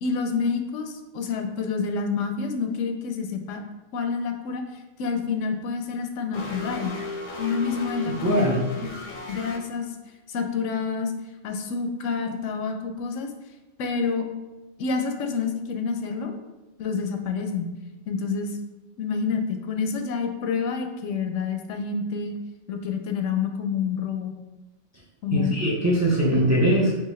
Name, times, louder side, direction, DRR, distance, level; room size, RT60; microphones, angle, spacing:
voice 1, 0.0-3.6 3.9-4.6 5.0-6.9 7.4-8.5 8.8-8.9 9.3-9.9 10.3-11.1 11.4-13.3 13.8-14.3 14.8-16.3 16.8-17.7 18.1-18.6 19.0-22.3 22.7-24.3 25.2-25.6 26.3-26.4, left 5 dB, 85° left, 5 dB, 0.9 m, -28 dB
sound 1, 6.3-9.6, left 2 dB, 50° left, 0.6 m, -35 dB
voice 2, 8.2-8.6 25.3-27.0, right 1 dB, 20° right, -3 dB, 0.6 m, -21 dB
4.5 x 3.0 x 3.2 m, 1.1 s
omnidirectional pair, 1.3 m